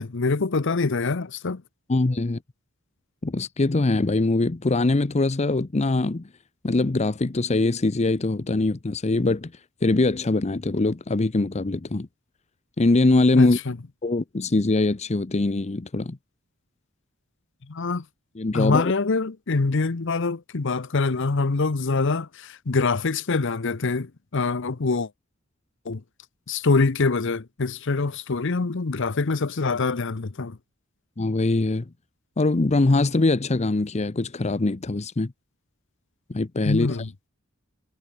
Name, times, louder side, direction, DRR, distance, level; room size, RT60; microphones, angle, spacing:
voice 1, 0.0-1.6 13.3-13.7 17.7-18.0 18.5-25.1 25.9-26.0 26.5-30.6 36.6-37.1, left 3 dB, 65° left, 0.8 m, -24 dB
voice 2, 1.9-2.4 3.2-6.2 6.6-9.5 9.8-12.1 12.8-13.6 14.0-16.2 18.4-18.9 31.2-31.9 32.4-35.3 36.3-37.0, left 2 dB, 35° left, 0.7 m, -22 dB
head